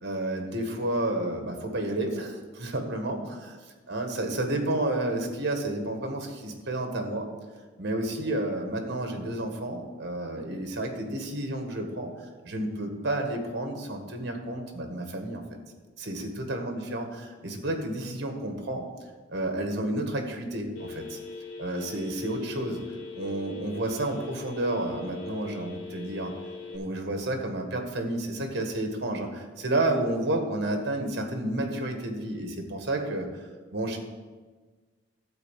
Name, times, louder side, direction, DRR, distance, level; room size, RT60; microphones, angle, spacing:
voice 1, 0.0-3.6 3.9-7.3 7.8-12.1 12.4-15.4 16.0-18.9 19.3-21.2 21.6-22.8 23.1-26.3 26.7-34.0, right 1 dB, 60° right, 4 dB, 1.6 m, -31 dB
Telephone, 20.8-26.8, left 4 dB, 80° left, 1.6 m, -41 dB
12.0 x 4.6 x 7.5 m, 1.4 s
head